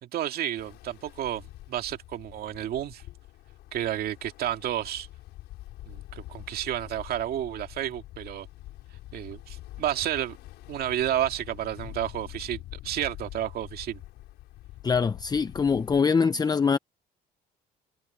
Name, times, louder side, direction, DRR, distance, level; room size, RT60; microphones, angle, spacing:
voice 1, 0.0-3.0 3.7-5.1 5.9-8.5 9.1-10.4 10.7-14.0, right 12 dB, 65° right, 2.2 m, -31 dB
Ocean, 0.6-16.0, left 16 dB, 85° left, 5.8 m, -45 dB
voice 2, 14.8-16.8, left 5 dB, 25° left, 0.7 m, -23 dB
cardioid pair, 110°, 17 cm